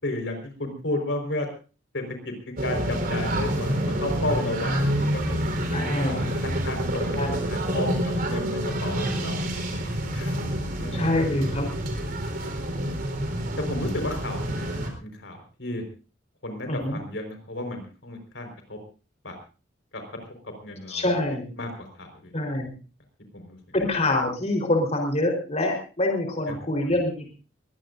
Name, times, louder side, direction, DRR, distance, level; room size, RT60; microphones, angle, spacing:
voice 1, 0.0-1.5 1.9-2.3 2.6-5.6 6.4-7.1 7.5-9.4 10.1-10.3 10.8-11.1 13.7-14.4 14.7-15.8 16.4-18.8 19.2-19.3 19.9-20.0 20.6-21.0 21.6-21.7 22.0-22.1 23.3-23.6, left 1 dB, 70° left, 5 dB, 4.7 m, -32 dB
sound 1, 2.6-14.9, right 1 dB, 55° right, 4.2 m, -28 dB
voice 2, 5.7-6.4 7.1-7.4 10.9-11.7 16.7-17.0 20.9-21.5 22.3-22.7 23.7-27.3, left 1 dB, 35° left, 2 dB, 4.1 m, -25 dB
23.0 x 18.5 x 2.6 m, 0.35 s
head